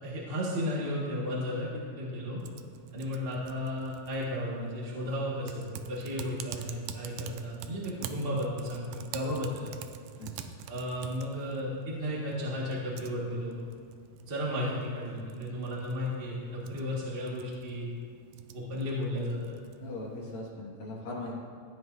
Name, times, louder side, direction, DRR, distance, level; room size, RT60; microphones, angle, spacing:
voice 1, 0.0-1.7 2.0-2.4 2.9-5.6 5.9-9.7 10.7-13.5 14.2-17.9 18.5-19.4, left 1 dB, 25° right, -6 dB, 1.2 m, -34 dB
Typing, 2.4-20.4, right 9 dB, 85° right, 2.1 m, -47 dB
voice 2, 10.2-10.6 19.8-21.4, left 2 dB, 65° left, -4 dB, 2.9 m, -40 dB
14.5 x 9.2 x 2.7 m, 2.2 s
omnidirectional pair, 3.6 m